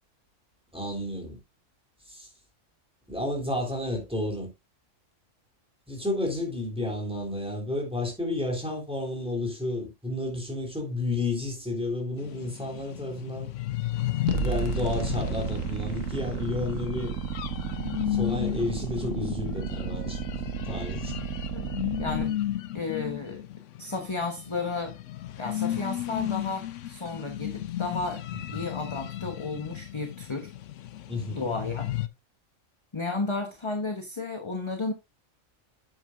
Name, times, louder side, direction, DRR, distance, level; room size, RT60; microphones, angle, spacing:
voice 1, 0.7-1.4 2.0-2.3 3.1-4.5 5.9-13.5 14.4-17.1 18.1-20.2 20.7-21.1 28.5-28.6 31.1-31.4, left 2 dB, 5° right, 3.3 m, -31 dB
sound 1, 12.2-32.1, left 13 dB, 75° left, 1.0 m, -34 dB
sound 2, 14.3-22.3, right 6 dB, 75° right, 1.6 m, -32 dB
voice 2, 21.5-22.4 22.7-23.4 23.8-24.9 25.4-28.2 28.5-30.5 31.3-31.9 32.9-34.9, left 3 dB, 25° left, 1.0 m, -33 dB
9.2 x 8.5 x 2.5 m
omnidirectional pair, 1.4 m